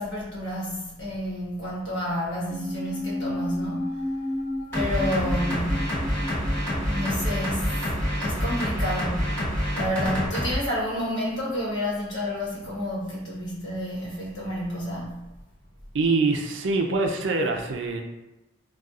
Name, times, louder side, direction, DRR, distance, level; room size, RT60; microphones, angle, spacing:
voice 1, 0.0-3.9 4.7-6.0 6.9-7.8 8.2-15.2, equal, 60° left, -6 dB, 1.1 m, -30 dB
sound 1, 2.5-9.0 9.3-9.4, left 1 dB, 35° left, 1.0 m, -34 dB
sound 2, 4.7-10.6, equal, 10° left, 1.1 m, -27 dB
voice 2, 15.9-18.0, right 3 dB, 65° right, 3 dB, 0.4 m, -24 dB
4.0 x 2.3 x 2.4 m, 0.96 s
head